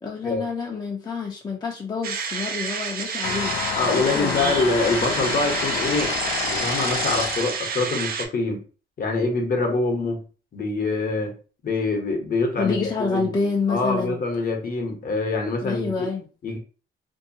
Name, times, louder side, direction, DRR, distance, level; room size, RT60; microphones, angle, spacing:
voice 1, 0.0-4.6 12.6-14.2 15.6-16.3, left 4 dB, 20° left, -1 dB, 0.6 m, -28 dB
sound 1, 2.0-8.3, right 5 dB, 50° right, 0.5 m, -29 dB
sound 2, 3.2-7.6, left 7 dB, 80° left, 0.5 m, -28 dB
voice 2, 3.8-6.2 6.4-8.6 9.0-10.2 10.5-11.3 11.6-13.3 13.7-16.1 16.4-16.6, left 3 dB, 45° left, 3 dB, 0.9 m, -25 dB
2.6 x 2.2 x 2.7 m, 0.36 s
cardioid pair, 90°, 20 cm